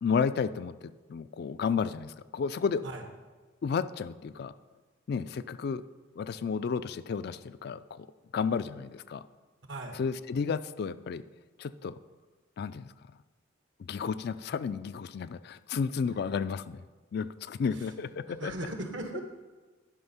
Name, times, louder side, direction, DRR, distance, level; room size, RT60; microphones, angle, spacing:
voice 1, 0.0-2.9 3.6-4.5 5.1-5.8 6.2-8.1 8.3-9.2 9.9-11.2 11.6-12.0 12.6-12.9 13.8-16.8 17.1-18.5, left 6 dB, 55° left, 14 dB, 0.3 m, -32 dB
voice 2, 18.3-19.2, right 1 dB, 70° right, 5 dB, 1.2 m, -37 dB
11.5 x 5.2 x 5.6 m, 1.3 s
head